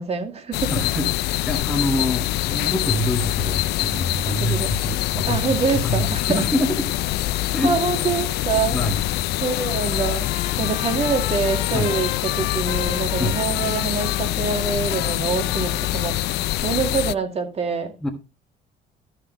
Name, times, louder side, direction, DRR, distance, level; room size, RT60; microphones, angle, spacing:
voice 1, 0.0-0.7 4.2-4.7 5.3-6.4 7.6-8.8 9.4-10.3 10.6-16.2 16.6-17.9, right 5 dB, 40° right, 2.2 m, -25 dB
sound 1, 0.5-17.2, left 16 dB, 75° left, 0.4 m, -24 dB
voice 2, 0.7-6.9 7.5-7.7 8.7-9.0 11.7-11.9 13.2-13.4 18.0-18.1, left 1 dB, 5° left, 1.4 m, -26 dB
Trumpet, 9.3-16.2, left 13 dB, 90° left, 1.1 m, -35 dB
13.5 x 5.9 x 3.9 m
cardioid pair, 110°, 17 cm